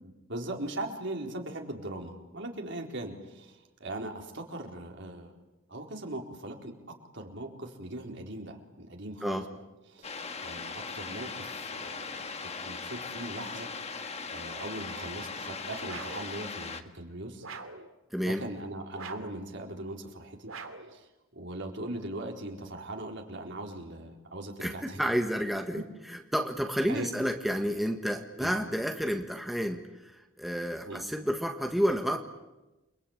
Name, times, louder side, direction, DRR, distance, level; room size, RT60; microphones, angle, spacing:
voice 1, 0.0-5.3 5.7-6.8 7.1-9.4 9.9-12.0 12.4-17.4 18.2-20.5 20.9-21.1 21.3-25.0 26.9-27.1 28.4-28.5 30.9-31.0, right 1 dB, 60° right, 2 dB, 4.2 m, -40 dB
sound 1, 10.0-16.8, left 4 dB, 30° left, 1.6 m, -39 dB
sound 2, 15.8-16.3 17.4-17.9 18.9-19.4 20.5-20.9, right 4 dB, 85° right, 2.9 m, -43 dB
voice 2, 18.1-18.4 24.6-32.2, equal, ahead, 3 dB, 1.7 m, -30 dB
29.5 x 22.5 x 8.9 m, 1.1 s
head